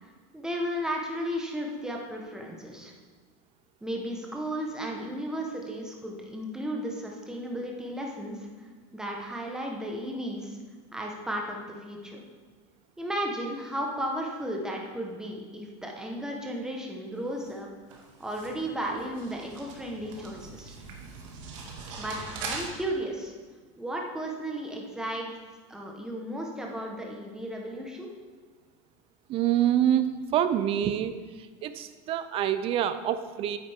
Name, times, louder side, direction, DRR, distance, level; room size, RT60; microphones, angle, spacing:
voice 1, 0.0-2.9 3.8-8.7 8.9-10.6 10.9-12.2 13.0-17.7 17.9-20.8 22.0-23.3 23.8-25.4 25.7-28.1, equal, 5° right, 0 dB, 1.2 m, -34 dB
sound 1, 17.2-22.6, right 4 dB, 80° right, 1.9 m, -41 dB
voice 2, 29.3-30.1 30.3-31.1 31.6-33.6, right 10 dB, 35° right, 12 dB, 0.5 m, -26 dB
9.1 x 8.9 x 3.6 m, 1.4 s
supercardioid pair, 150°, 16 cm